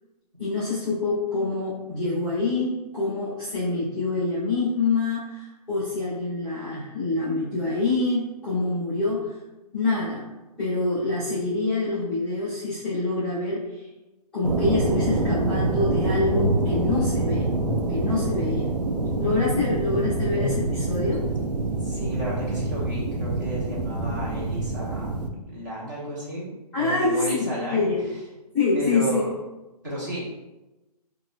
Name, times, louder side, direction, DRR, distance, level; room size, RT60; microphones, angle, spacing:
voice 1, 0.4-9.4 9.7-10.2 10.6-13.9 14.3-17.5 17.9-18.7 19.2-21.2 26.7-28.1 28.5-29.3, left 3 dB, 5° left, -17 dB, 0.7 m, -26 dB
sound 1, 14.4-25.3, right 2 dB, 85° right, 0.5 m, -26 dB
sound 2, 15.7-17.2 17.6-19.1 19.4-21.9, equal, 50° left, 0.7 m, -32 dB
voice 2, 21.8-25.1 25.5-27.9 28.7-29.3 29.8-30.2, equal, 30° right, -7 dB, 0.9 m, -32 dB
4.1 x 2.4 x 2.3 m, 1.0 s
hypercardioid pair, 175°, 20 cm